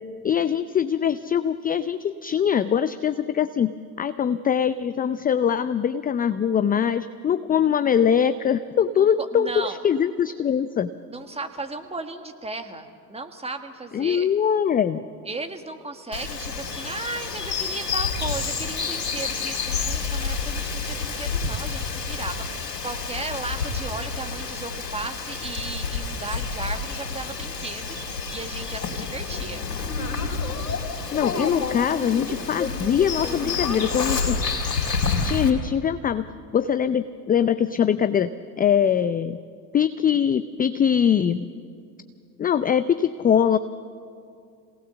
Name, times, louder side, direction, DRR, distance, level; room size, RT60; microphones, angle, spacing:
voice 1, 0.2-10.9 13.9-15.0 31.1-34.4 35.2-36.3 36.5-38.3 38.6-39.4 39.7-41.4 42.4-43.6, left 8 dB, 20° left, 12 dB, 0.5 m, -22 dB
voice 2, 9.0-9.8 11.1-14.3 15.3-29.6, right 3 dB, 10° right, 6 dB, 1.8 m, -35 dB
Bird vocalization bird call bird song, 16.1-35.5, left 4 dB, 85° left, 3.4 m, -29 dB
27.0 x 18.5 x 7.1 m, 2.3 s
hypercardioid pair, 75°, 48 cm